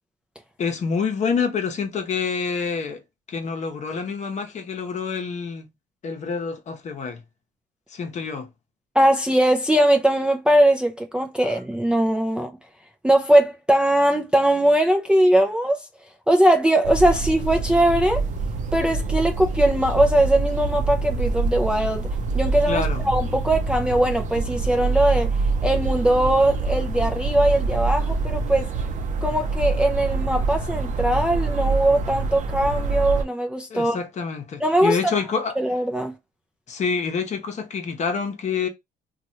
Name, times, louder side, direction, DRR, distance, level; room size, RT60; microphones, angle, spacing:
voice 1, 0.6-3.0 3.3-5.6 6.0-7.2 7.9-8.5 22.7-23.0 33.7-35.6 36.7-38.7, left 5 dB, 45° left, 0.9 m, -27 dB
voice 2, 8.9-12.5 13.0-15.8 16.3-18.2 18.7-22.1 22.3-25.3 25.6-28.7 29.2-34.0 34.6-35.2 35.6-36.1, right 1 dB, 5° right, 0.5 m, -20 dB
sound 1, 16.8-33.2, right 3 dB, 45° right, 0.7 m, -25 dB
3.0 x 2.4 x 2.7 m
cardioid pair, 110°, 17 cm